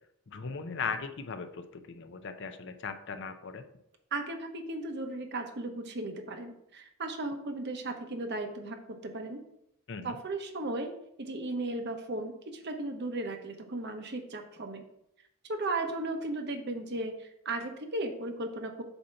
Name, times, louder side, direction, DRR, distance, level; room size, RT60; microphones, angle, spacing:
voice 1, 0.3-3.6 9.9-10.2, left 5 dB, 55° left, 8 dB, 0.6 m, -38 dB
voice 2, 4.1-8.8 9.0-9.4 10.0-10.9 11.2-14.8 15.5-18.8, right 2 dB, 50° right, 5 dB, 0.8 m, -36 dB
7.9 x 2.8 x 5.7 m, 0.77 s
head